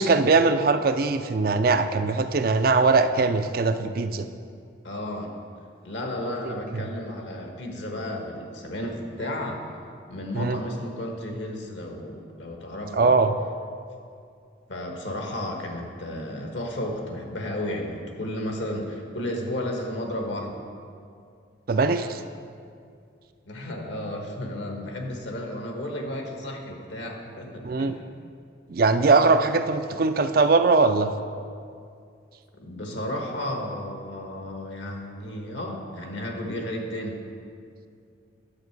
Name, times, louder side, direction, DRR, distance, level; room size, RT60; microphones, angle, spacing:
voice 1, 0.0-4.3 6.7-6.8 10.3-10.6 12.9-13.3 21.7-22.2 27.6-28.0 28.7-31.1, right 4 dB, 50° right, 9 dB, 0.4 m, -21 dB
voice 2, 4.8-5.3 5.8-9.7 10.1-13.1 14.7-20.5 23.4-28.0 32.6-37.2, left 1 dB, 75° left, 1 dB, 1.4 m, -33 dB
10.5 x 7.6 x 4.7 m, 2.4 s
head